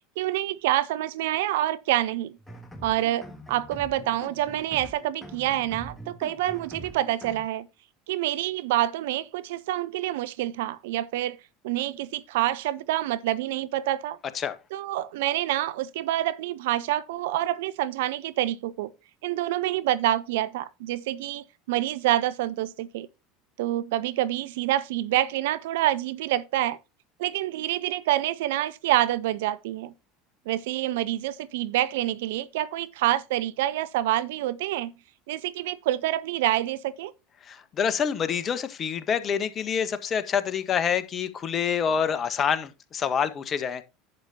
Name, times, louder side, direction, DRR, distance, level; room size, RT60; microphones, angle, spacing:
voice 1, 0.2-2.4 2.8-7.7 8.1-11.4 11.6-14.2 14.7-18.9 19.2-23.1 23.6-26.8 27.2-29.9 30.5-34.9 35.3-37.1, right 14 dB, 70° right, 0.7 m, -27 dB
sound 1, 2.4-7.4, right 1 dB, 15° left, 3.1 m, -44 dB
voice 2, 37.5-43.8, left 7 dB, 35° left, 1.4 m, -27 dB
11.5 x 8.4 x 2.9 m
hypercardioid pair, 75°, 0 cm